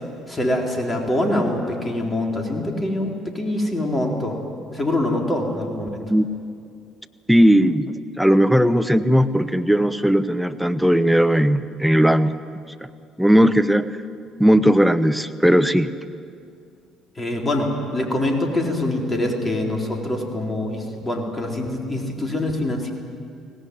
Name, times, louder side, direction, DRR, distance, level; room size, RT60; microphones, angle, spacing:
voice 1, 0.3-4.4 4.7-6.0 17.2-22.9, left 1 dB, 20° left, 1 dB, 4.1 m, -24 dB
voice 2, 7.3-12.3 13.2-13.8 14.4-15.9, equal, ahead, 9 dB, 1.0 m, -17 dB
23.5 x 18.0 x 9.5 m, 2.4 s
figure-of-eight pair, 50°, 0 cm